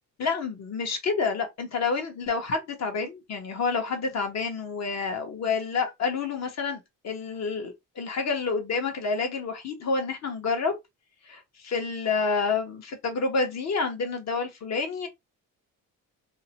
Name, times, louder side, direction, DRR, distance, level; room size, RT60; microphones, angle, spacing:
voice 1, 0.2-10.8 11.3-15.1, left 4 dB, 45° left, 0.9 m, -29 dB
2.7 x 2.1 x 2.8 m
cardioid pair, 105°, 36 cm